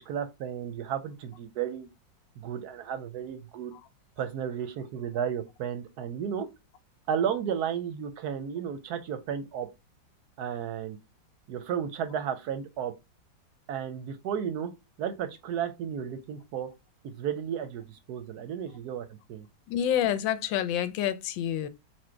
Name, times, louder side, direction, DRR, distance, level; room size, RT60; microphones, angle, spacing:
voice 1, 0.1-1.9 2.4-3.7 4.2-6.5 7.1-9.7 10.4-11.0 11.5-12.9 13.7-14.7 15.0-16.7 17.0-19.5, right 8 dB, 70° right, 1.0 m, -33 dB
voice 2, 19.7-21.7, left 10 dB, 90° left, 1.4 m, -28 dB
4.4 x 2.4 x 4.4 m
omnidirectional pair, 2.0 m